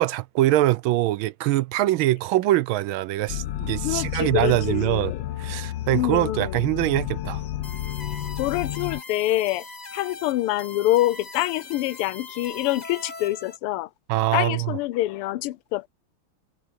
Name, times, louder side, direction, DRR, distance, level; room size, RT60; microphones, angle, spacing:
voice 1, 0.0-5.1 5.4-7.4 14.1-14.8, right 15 dB, 75° right, 1.3 m, -23 dB
sound 1, 3.3-9.0, left 13 dB, 70° left, 1.3 m, -31 dB
voice 2, 3.8-5.2 5.9-6.6 8.4-9.7 9.9-13.9 14.3-15.9, left 16 dB, 90° left, 1.5 m, -26 dB
sound 2, 7.6-13.6, left 3 dB, 30° left, 0.8 m, -41 dB
omnidirectional pair, 2.4 m